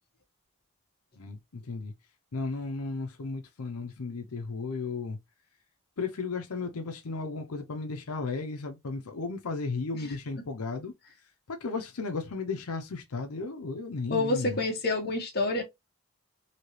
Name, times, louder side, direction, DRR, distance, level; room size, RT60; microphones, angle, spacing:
voice 1, 1.2-1.9 2.3-5.2 6.0-10.9 11.5-14.6, left 4 dB, 85° left, 0.7 m, -34 dB
voice 2, 14.1-15.6, left 2 dB, 45° left, 0.9 m, -28 dB
3.2 x 2.8 x 2.7 m
head